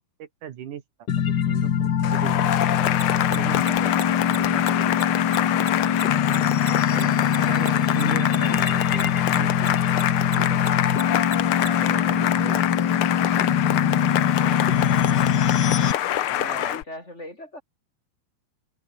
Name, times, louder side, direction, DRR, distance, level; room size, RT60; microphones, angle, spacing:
voice 1, 0.2-1.1 1.5-2.5 3.1-5.0 5.3-5.6 6.9-9.8 10.3-10.8 11.5-12.6 14.4-14.7, right 10 dB, 70° right, 3.1 m, -38 dB
sound 1, 1.1-15.9, left 8 dB, 55° left, 1.2 m, -23 dB
Cheering / Applause, 2.0-16.8, left 12 dB, 80° left, 1.2 m, -25 dB
Mechanisms, 2.9-9.7 9.9-11.7, right 4 dB, 35° right, 4.5 m, -37 dB
voice 2, 16.3-17.6, left 1 dB, 20° left, 6.8 m, -38 dB
open air
omnidirectional pair, 3.8 m